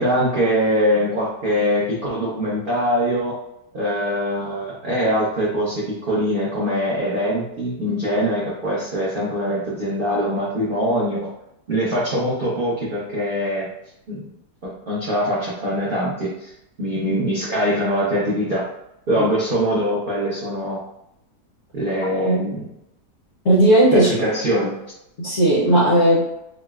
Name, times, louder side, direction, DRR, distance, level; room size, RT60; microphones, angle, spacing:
voice 1, 0.0-3.4 3.7-11.2 11.7-13.7 14.1-14.2 14.6-16.5 16.8-18.6 19.1-20.8 21.7-22.6 23.9-24.7, equal, 65° right, -6 dB, 0.5 m, -22 dB
voice 2, 23.4-24.1 25.2-26.3, right 1 dB, 60° left, -6 dB, 0.7 m, -16 dB
3.8 x 2.0 x 2.3 m, 0.82 s
omnidirectional pair, 1.8 m